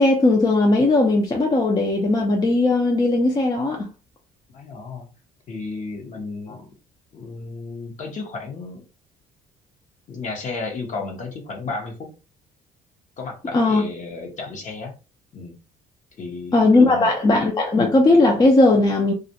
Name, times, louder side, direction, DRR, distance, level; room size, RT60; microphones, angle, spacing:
voice 1, 0.0-3.9 13.5-13.8 16.5-19.1, left 2 dB, 25° left, 0.5 m, -17 dB
voice 2, 4.5-5.1 5.5-6.7 7.1-8.8 10.1-12.1 13.2-14.9 15.3-15.6 16.2-17.1, left 3 dB, 45° left, 0.9 m, -33 dB
2.4 x 2.1 x 2.7 m
cardioid pair, 110°, 17 cm